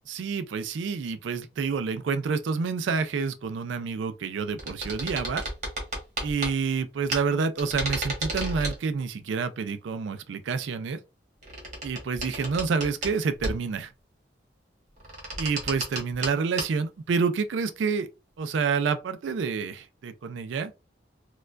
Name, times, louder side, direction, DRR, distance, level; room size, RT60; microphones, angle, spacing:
voice 1, 0.1-5.4 6.2-11.0 11.8-13.9 15.4-18.1 18.4-20.7, right 5 dB, 85° right, 0.4 m, -28 dB
sound 1, 4.6-6.5 7.1-7.2 7.6-8.8 11.4-13.1 13.4-13.8 15.0-16.3 16.6-16.7, right 1 dB, 40° right, 1.3 m, -32 dB
4.3 x 2.3 x 2.4 m
head